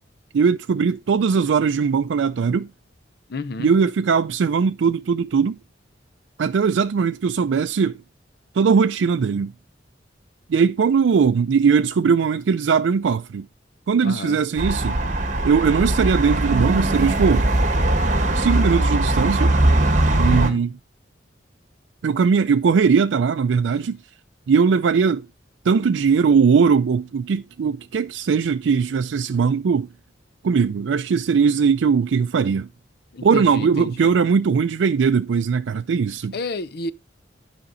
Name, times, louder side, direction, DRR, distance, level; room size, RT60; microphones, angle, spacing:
voice 1, 0.3-2.7 3.6-5.6 6.4-8.0 8.5-9.5 10.5-13.4 13.9-15.0 15.4-17.5 18.3-19.6 20.2-20.7 22.0-24.0 24.5-25.3 25.6-29.9 30.4-32.7 33.2-36.3, right 6 dB, 80° right, 0.4 m, -19 dB
voice 2, 3.3-3.7 14.0-14.4 20.2-20.6 33.1-34.1 36.3-36.9, left 3 dB, 60° left, 0.6 m, -31 dB
sound 1, 14.6-20.5, right 1 dB, 45° right, 1.4 m, -20 dB
11.5 x 5.2 x 3.9 m
head